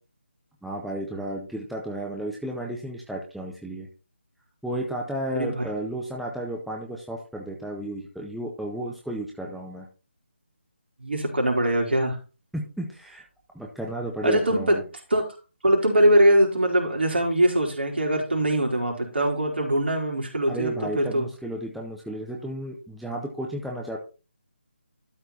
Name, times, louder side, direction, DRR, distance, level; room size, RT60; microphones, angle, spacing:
voice 1, 0.6-3.9 4.6-9.9 12.5-13.2 13.5-14.8 20.5-24.0, right 1 dB, ahead, -2 dB, 0.7 m, -33 dB
voice 2, 5.3-5.7 11.0-12.2 14.2-14.8 15.1-15.2 15.6-21.3, right 1 dB, 65° right, 1 dB, 3.7 m, -22 dB
12.5 x 4.6 x 4.1 m, 0.33 s
figure-of-eight pair, 155°, 6 cm